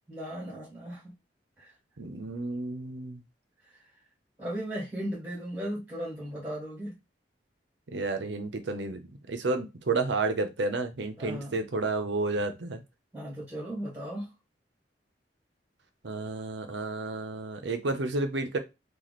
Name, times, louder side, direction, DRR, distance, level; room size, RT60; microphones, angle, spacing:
voice 1, 0.1-1.1 1.6-1.7 3.6-3.8 4.4-7.0 11.2-11.5 13.1-14.3, equal, 15° right, 1.6 m, -36 dB
voice 2, 2.0-3.2 7.9-9.0 9.3-12.8 16.0-18.6, right 3 dB, 75° right, 0.7 m, -31 dB
3.1 x 2.4 x 4.0 m
head